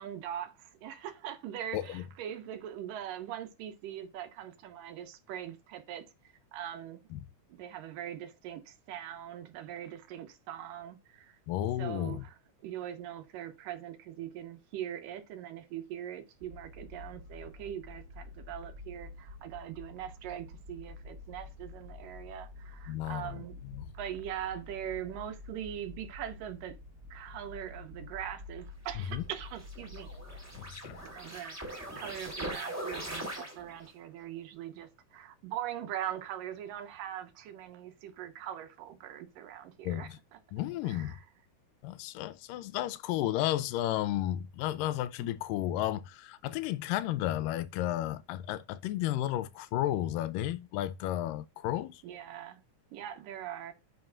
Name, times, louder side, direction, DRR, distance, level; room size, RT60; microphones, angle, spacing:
voice 1, 0.0-6.0 6.5-7.0 7.5-11.4 11.8-26.8 27.1-30.1 31.1-40.4 40.8-41.3 45.2-45.4 47.0-47.1 52.0-52.6 52.9-53.7, right 11 dB, 85° right, 2.7 m, -42 dB
voice 2, 1.7-2.0 7.1-7.2 11.5-12.2 22.9-23.4 23.8-23.9 29.1-29.2 30.5-31.0 39.8-40.2 40.5-41.2 41.8-52.0, left 13 dB, 85° left, 2.3 m, -33 dB
sound 1, 16.4-30.7, left 2 dB, 35° right, 1.6 m, -48 dB
sound 2, 28.9-33.9, right 1 dB, 5° right, 2.5 m, -41 dB
9.7 x 5.5 x 2.5 m
omnidirectional pair, 3.8 m